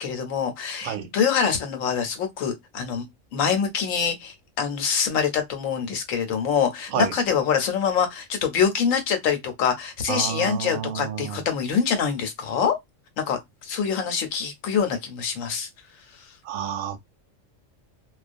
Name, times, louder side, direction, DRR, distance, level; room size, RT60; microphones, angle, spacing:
voice 1, 0.0-3.1 3.3-12.8 13.2-15.7, left 7 dB, 80° left, 1.1 m, -25 dB
voice 2, 10.1-11.4 16.4-17.0, right 9 dB, 90° right, 1.0 m, -29 dB
2.3 x 2.2 x 2.5 m
omnidirectional pair, 1.4 m